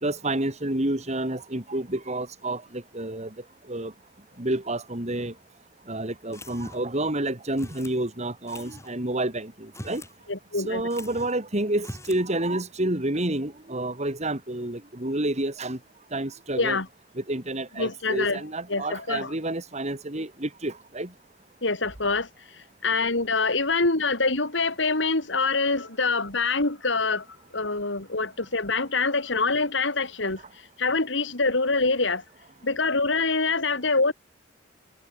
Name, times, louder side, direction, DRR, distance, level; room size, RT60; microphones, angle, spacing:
voice 1, 0.0-3.3 3.7-3.9 4.4-5.3 5.9-10.0 10.6-15.8 16.1-16.8 17.2-21.1, right 1 dB, 35° right, 3.1 m, -29 dB
sound 1, 6.3-7.0 7.6-8.0 8.5-8.9 9.6-10.2 10.4-10.5 10.9-11.4 11.8-12.3, left 1 dB, 15° left, 6.9 m, -42 dB
voice 2, 10.3-10.8 16.6-16.9 17.8-18.4 18.7-19.3 21.6-22.3 22.8-27.2 27.5-30.4 30.8-32.2 32.6-34.1, left 3 dB, 65° left, 2.8 m, -25 dB
head